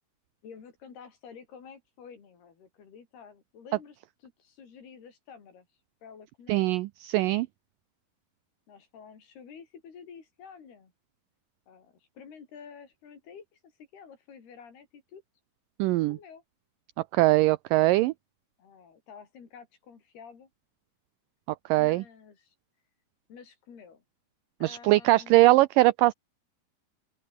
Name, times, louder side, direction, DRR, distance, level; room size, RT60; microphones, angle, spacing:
voice 1, 0.4-4.0 4.2-5.7 6.0-6.7 8.7-10.9 11.7-15.2 16.1-16.4 18.6-20.5 21.8-22.6 23.3-24.0 24.6-25.6, left 6 dB, 90° left, 6.4 m, -50 dB
voice 2, 6.5-7.5 15.8-16.2 17.1-18.1 21.7-22.0 24.6-26.1, right 18 dB, 80° right, 2.0 m, -21 dB
open air
omnidirectional pair, 4.4 m